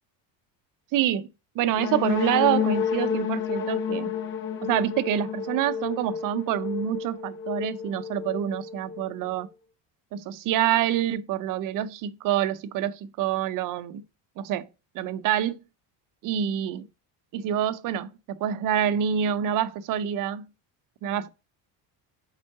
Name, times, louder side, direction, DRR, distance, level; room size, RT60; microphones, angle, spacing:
voice 1, 0.9-1.3 1.6-4.1 4.6-9.5 10.1-14.0 14.4-14.7 14.9-15.6 16.2-16.8 17.3-20.4 21.0-21.3, right 10 dB, 45° right, 0.6 m, -26 dB
sound 1, 1.8-9.5, left 8 dB, 30° left, 0.4 m, -30 dB
5.7 x 4.6 x 4.6 m
cardioid pair, 170°, 45 cm